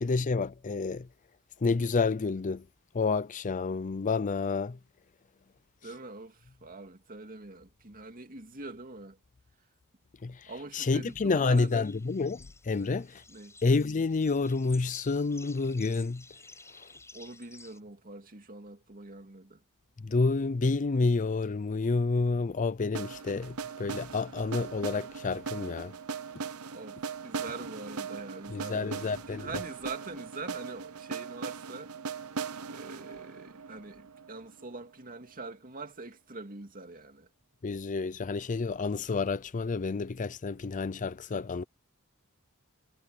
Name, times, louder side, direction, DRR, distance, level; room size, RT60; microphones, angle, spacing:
voice 1, 0.0-1.1 1.6-2.7 2.9-4.8 10.2-13.2 13.6-16.2 16.8-16.9 20.0-25.9 28.5-29.5 37.6-41.6, left 4 dB, 35° left, 0.5 m, -29 dB
voice 2, 5.8-9.2 10.5-11.9 12.8-13.0 13.3-13.6 17.1-19.6 26.3-31.9 32.6-37.3 41.3-41.4, right 3 dB, 40° right, 2.5 m, -44 dB
sound 1, 11.1-17.8, left 3 dB, 15° left, 6.2 m, -53 dB
sound 2, 22.9-34.9, right 5 dB, 85° right, 0.9 m, -39 dB
head